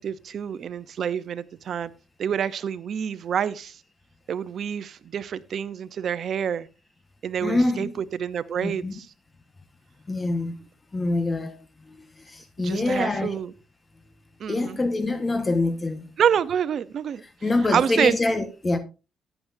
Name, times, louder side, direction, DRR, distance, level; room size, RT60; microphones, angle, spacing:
voice 1, 0.0-1.9 2.2-3.8 4.3-6.7 7.2-9.1 12.6-13.5 14.4-14.8 16.2-17.2 17.7-18.2, right 8 dB, 60° right, 0.8 m, -27 dB
voice 2, 7.4-7.9 8.6-8.9 10.1-10.5 10.9-11.6 12.3-13.4 14.5-16.1 17.4-18.8, left 2 dB, 25° left, 1.4 m, -25 dB
14.0 x 10.0 x 2.7 m
cardioid pair, 90°, 0 cm